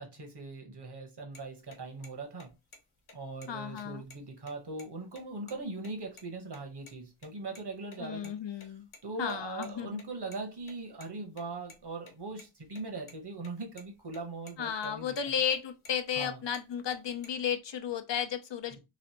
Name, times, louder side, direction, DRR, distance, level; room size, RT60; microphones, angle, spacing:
voice 1, 0.0-2.5 3.1-8.7 9.0-15.1 16.2-16.4, right 3 dB, 55° right, 1.1 m, -40 dB
sound 1, 1.3-1.4 1.7-1.8 2.0-2.1 2.4-2.8 3.1-3.2 3.4-3.5 3.8-4.8 5.1-5.2 5.5-5.6 5.8-6.2 6.5-7.0 7.2-8.3 8.6-11.1 11.4-13.1 13.4-13.5 13.8-14.2 14.5-14.9 15.2-16.3 16.5-17.3, left 3 dB, 80° left, 1.0 m, -53 dB
voice 2, 3.5-4.0 8.0-8.9 9.2-10.0 14.6-18.8, left 8 dB, 60° left, 0.5 m, -33 dB
3.1 x 2.5 x 2.8 m
wide cardioid pair, 70°, 48 cm